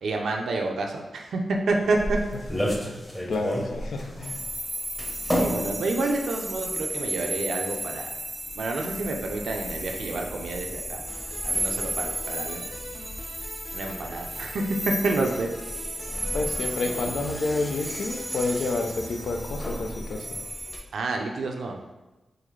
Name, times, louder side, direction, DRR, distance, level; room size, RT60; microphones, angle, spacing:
voice 1, 0.0-1.4 1.7-2.2 5.4-8.1 8.6-11.0 11.4-12.7 13.7-14.8 15.0-15.5 20.9-21.8, right 3 dB, 80° right, 2 dB, 0.5 m, -29 dB
sound 1, 1.7-20.8, equal, 15° left, 0.9 m, -36 dB
voice 2, 3.3-4.4 16.3-20.4, left 3 dB, 80° left, 3 dB, 0.4 m, -29 dB
sound 2, 4.2-20.8, right 1 dB, 10° right, 0.4 m, -34 dB
sound 3, 11.1-19.3, left 1 dB, 60° left, 0.8 m, -45 dB
3.8 x 2.7 x 3.1 m, 1.1 s
cardioid pair, 65°, 0 cm